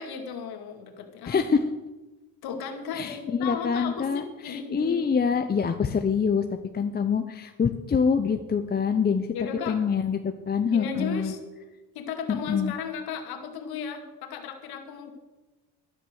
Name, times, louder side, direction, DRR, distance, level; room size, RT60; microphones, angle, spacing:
voice 1, 0.0-1.4 2.4-5.2 9.3-9.8 10.7-11.4 11.9-15.1, left 6 dB, 70° left, 5 dB, 2.3 m, -35 dB
voice 2, 1.3-1.7 2.9-6.4 6.7-9.3 9.7-11.3 12.3-12.7, left 6 dB, 25° left, 7 dB, 0.8 m, -25 dB
13.0 x 10.0 x 6.5 m, 1.1 s
cardioid pair, 100°, 39 cm